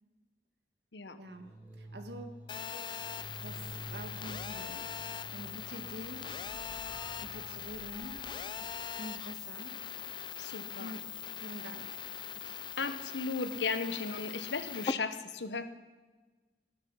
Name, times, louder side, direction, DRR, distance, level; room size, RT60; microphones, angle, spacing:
voice 1, 1.2-2.4 3.4-4.9 5.3-6.4 7.2-8.2 8.6-9.8 10.8-12.6, right 1 dB, 70° right, 6 dB, 1.7 m, -47 dB
sound 1, 1.3-9.6, right 1 dB, 10° right, 3.3 m, -50 dB
Telephone, 2.5-14.9, left 7 dB, 25° left, 0.4 m, -41 dB
voice 2, 10.4-10.9 12.8-15.6, left 4 dB, 80° left, 11 dB, 1.0 m, -36 dB
18.5 x 10.5 x 5.5 m, 1.3 s
head